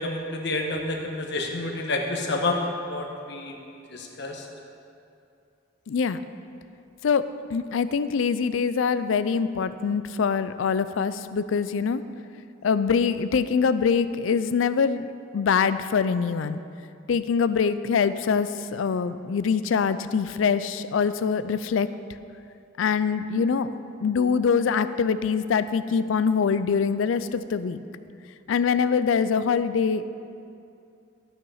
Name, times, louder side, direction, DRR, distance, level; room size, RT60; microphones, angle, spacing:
voice 1, 0.0-3.5 3.9-4.5, left 2 dB, 65° left, 2 dB, 1.2 m, -29 dB
voice 2, 5.9-6.2 7.0-12.0 12.6-16.6 17.1-21.9 22.8-27.8 28.5-30.0, left 6 dB, 85° left, 13 dB, 0.4 m, -24 dB
12.5 x 5.8 x 5.5 m, 2.6 s
head